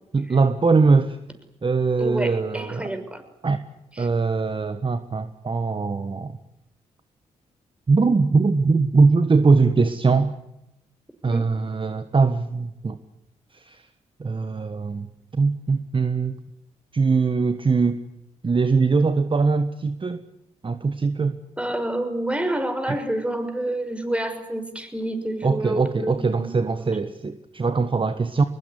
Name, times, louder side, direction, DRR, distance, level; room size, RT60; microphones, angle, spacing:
voice 1, 0.1-1.2 1.6-2.9 3.4-3.6 4.0-6.4 7.9-10.3 11.2-13.0 13.5-13.8 14.2-15.1 15.3-16.4 16.9-18.0 18.4-20.2 20.6-21.4 22.9-23.0 25.4-28.4, right 4 dB, 35° right, 10 dB, 1.5 m, -21 dB
voice 2, 2.0-3.2 4.0-4.1 11.2-11.5 21.6-26.9, right 1 dB, 10° right, 8 dB, 6.2 m, -28 dB
23.5 x 21.5 x 10.0 m, 0.89 s
hypercardioid pair, 40°, 15 cm